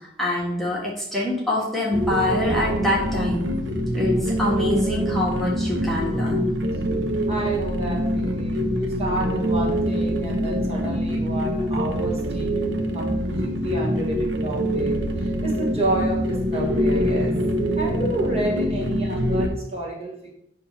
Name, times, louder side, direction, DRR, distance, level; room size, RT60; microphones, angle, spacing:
voice 1, 0.2-3.4 3.9-6.5, left 1 dB, ahead, -6 dB, 1.6 m, -25 dB
sound 1, 1.9-19.5, equal, 90° right, 0.9 m, -24 dB
voice 2, 7.3-17.4 17.8-20.3, right 2 dB, 35° right, -3 dB, 1.6 m, -30 dB
8.7 x 3.0 x 5.6 m, 0.74 s
head